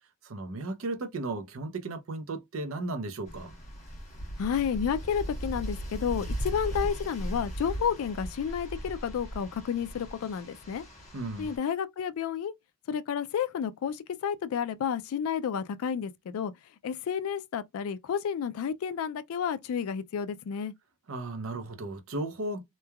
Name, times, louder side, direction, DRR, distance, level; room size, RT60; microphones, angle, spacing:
voice 1, 0.2-3.5 11.1-11.5 21.1-22.6, right 2 dB, 65° right, 0.6 m, -35 dB
sound 1, 3.3-11.6, equal, 30° left, 1.1 m, -38 dB
voice 2, 4.4-10.8 11.4-12.5 12.9-16.5 16.8-20.7, left 7 dB, 75° left, 0.3 m, -31 dB
3.1 x 2.2 x 2.2 m
head